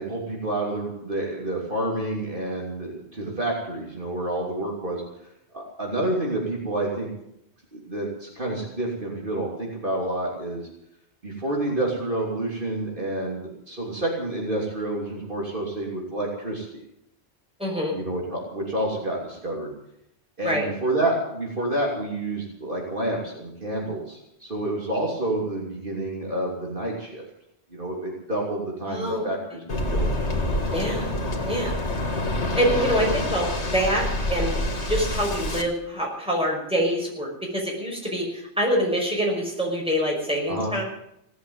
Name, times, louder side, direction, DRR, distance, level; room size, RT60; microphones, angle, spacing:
voice 1, 0.0-5.3 5.5-7.1 7.7-10.7 11.2-16.8 17.9-19.7 20.4-27.2 27.7-30.0 40.5-40.7, right 1 dB, 50° right, -2 dB, 3.3 m, -29 dB
voice 2, 17.6-18.0 20.4-20.7 28.9-29.3 30.7-31.1 31.5-31.8 32.6-34.6 34.9-40.8, equal, 5° right, -2 dB, 5.6 m, -25 dB
Waves surf, 29.7-35.6, left 1 dB, 80° left, 2.3 m, -27 dB
17.5 x 8.1 x 9.5 m, 0.78 s
omnidirectional pair, 1.1 m